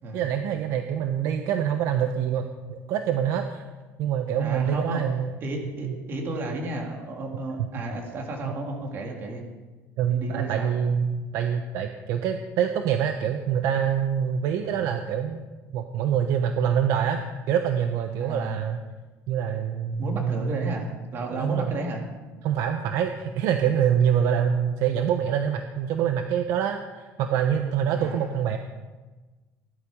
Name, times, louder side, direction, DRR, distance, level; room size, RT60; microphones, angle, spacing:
voice 1, 0.1-3.6 4.0-5.3 5.8-5.9 10.0-15.4 15.7-17.2 17.5-18.8 19.3-20.7 21.3-21.8 22.4-26.8 27.2-28.6, right 8 dB, 65° right, 6 dB, 1.1 m, -25 dB
voice 2, 4.4-5.0 5.4-9.5 10.1-10.7 14.6-14.9 18.2-18.7 20.0-22.0 27.9-28.3, right 2 dB, 40° right, 1 dB, 3.4 m, -33 dB
18.0 x 12.0 x 5.4 m, 1.2 s
cardioid pair, 150°, 6 cm